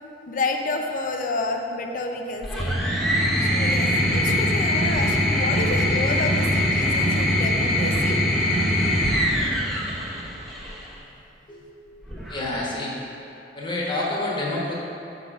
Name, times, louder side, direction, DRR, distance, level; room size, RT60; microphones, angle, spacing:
voice 1, 0.3-2.8 3.4-8.2, left 3 dB, 50° left, 4 dB, 0.5 m, -30 dB
sound 1, 2.4-10.8 12.0-12.7, equal, ahead, 0.8 m, -22 dB
voice 2, 12.3-12.9 13.5-14.7, left 2 dB, 25° left, -5 dB, 1.2 m, -28 dB
7.1 x 4.0 x 4.6 m, 2.8 s
head